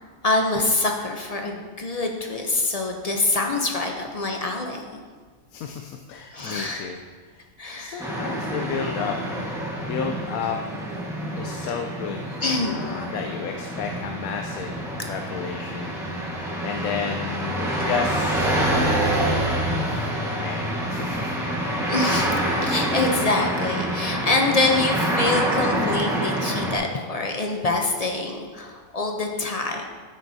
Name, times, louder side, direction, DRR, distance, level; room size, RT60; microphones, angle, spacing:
voice 1, 0.2-5.0 6.3-6.9 7.6-8.1 11.5-11.7 12.4-12.8 19.9-20.0 21.9-22.3 22.6-29.8, left 2 dB, 40° left, 2 dB, 0.6 m, -25 dB
voice 2, 5.5-7.4 7.8-9.5 9.8-10.6 11.4-12.3 12.7-15.9 16.6-18.5 19.1-19.5 20.3-21.3, left 6 dB, 90° left, 4 dB, 1.0 m, -32 dB
sound 1, 8.0-26.8, right 1 dB, ahead, 1.2 m, -26 dB
9.8 x 7.8 x 2.7 m, 1.5 s
omnidirectional pair, 1.5 m